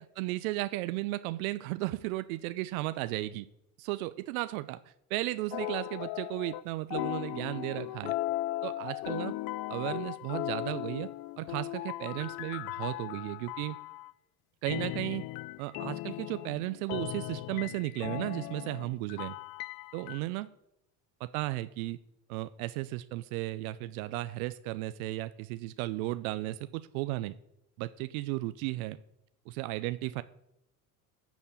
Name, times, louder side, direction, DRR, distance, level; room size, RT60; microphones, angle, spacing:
voice 1, 0.0-3.5 3.8-4.8 5.1-8.1 8.6-9.3 9.7-11.1 11.4-13.8 14.6-15.2 15.6-19.4 19.9-20.5 21.2-22.0 22.3-27.3 27.8-29.0 29.5-30.2, right 18 dB, 75° right, 14 dB, 0.6 m, -35 dB
sound 1, 5.5-6.6 6.9-14.1 14.6-20.2, left 16 dB, 60° left, 0.5 m, -37 dB
12.5 x 4.2 x 8.4 m, 0.84 s
hypercardioid pair, 90°, 43 cm